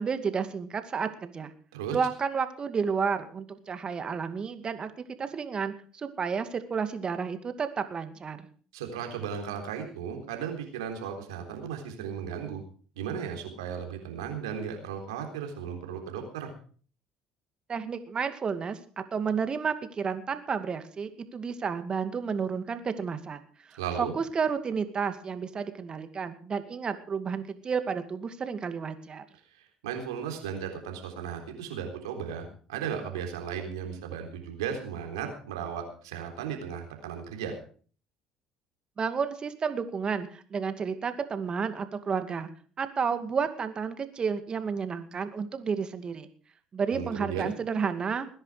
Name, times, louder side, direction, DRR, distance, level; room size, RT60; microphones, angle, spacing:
voice 1, 0.0-1.5 1.9-4.9 5.2-8.5 17.7-23.4 23.7-29.2 39.0-42.5 42.8-46.3 46.7-48.3, right 6 dB, 40° right, 9 dB, 2.3 m, -31 dB
voice 2, 8.7-12.6 13.0-16.5 23.8-24.1 29.5-37.6 46.9-47.5, right 7 dB, 85° right, 4 dB, 3.7 m, -35 dB
20.0 x 10.5 x 5.0 m, 0.43 s
hypercardioid pair, 65°, 2 cm